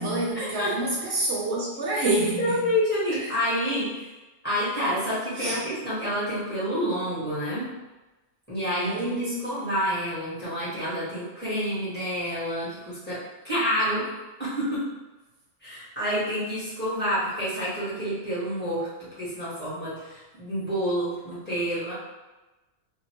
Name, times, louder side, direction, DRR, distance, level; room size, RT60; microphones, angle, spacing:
voice 1, 0.0-2.6 3.2-3.4 5.4-5.6 8.8-9.7, right 1 dB, 70° right, -5 dB, 0.9 m, -28 dB
voice 2, 2.0-4.1 4.4-7.7 8.5-14.1 14.4-14.8 15.6-21.9, equal, 10° left, -11 dB, 1.3 m, -28 dB
2.6 x 2.6 x 2.9 m, 1.1 s
omnidirectional pair, 1.2 m